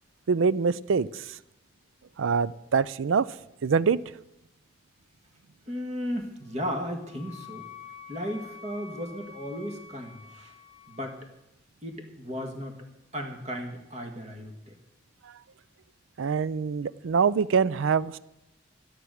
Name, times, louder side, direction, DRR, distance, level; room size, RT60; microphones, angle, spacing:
voice 1, 0.3-1.4 2.2-3.3 3.6-4.0 16.2-18.2, right 5 dB, 85° right, 0.4 m, -24 dB
voice 2, 5.7-7.6 8.1-10.5 10.9-11.2 11.8-12.9 13.1-14.8, equal, 35° right, 1.7 m, -35 dB
Wind instrument woodwind instrument, 6.5-11.3, left 7 dB, 30° left, 0.8 m, -48 dB
12.0 x 10.0 x 6.5 m
head